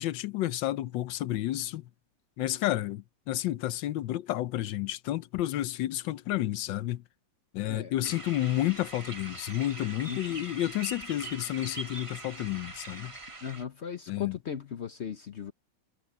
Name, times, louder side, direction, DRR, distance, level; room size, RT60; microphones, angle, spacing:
voice 1, 0.0-1.9 2.4-7.0 7.5-13.1 14.1-14.4, left 14 dB, 75° left, 1.4 m, -31 dB
voice 2, 7.6-8.2 10.1-10.4 13.4-15.5, left 8 dB, 55° left, 0.7 m, -38 dB
sound 1, 8.0-13.6, right 2 dB, 20° right, 1.3 m, -43 dB
omnidirectional pair, 2.0 m